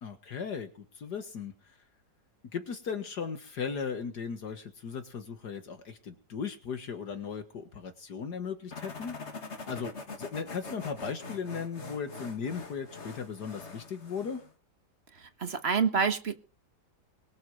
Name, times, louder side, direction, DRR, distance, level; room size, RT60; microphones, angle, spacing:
voice 1, 0.0-1.5 2.5-9.1 9.7-9.9 10.2-14.4, left 6 dB, 70° left, 7 dB, 2.1 m, -37 dB
sound 1, 8.7-14.5, left 3 dB, 40° left, 2.3 m, -43 dB
voice 2, 15.1-16.3, right 6 dB, 40° right, 10 dB, 1.4 m, -28 dB
22.5 x 7.8 x 5.4 m, 0.36 s
omnidirectional pair, 1.9 m